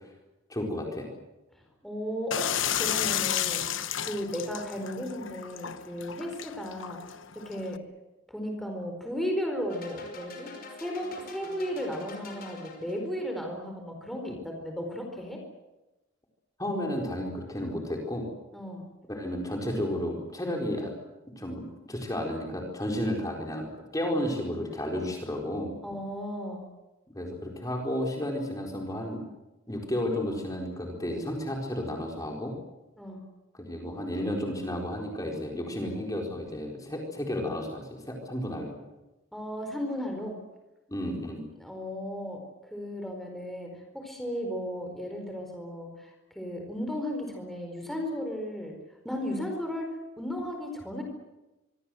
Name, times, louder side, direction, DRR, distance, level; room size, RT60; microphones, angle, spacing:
voice 1, 0.5-1.1 16.6-18.3 19.1-20.9 21.4-25.7 27.1-29.2 29.7-32.5 33.6-38.8 40.9-41.4, left 1 dB, 15° left, 0 dB, 4.4 m, -32 dB
voice 2, 1.5-7.0 7.3-7.8 8.3-10.5 10.8-15.4 18.5-18.9 25.8-26.6 33.0-33.2 39.3-40.3 41.6-42.4 42.7-48.7 49.0-49.9 50.2-51.0, equal, ahead, 2 dB, 4.4 m, -35 dB
sound 1, 2.3-7.8, left 10 dB, 70° left, 1.1 m, -32 dB
sound 2, 9.7-13.2, left 3 dB, 45° left, 5.4 m, -45 dB
25.0 x 24.0 x 7.9 m, 1.0 s
head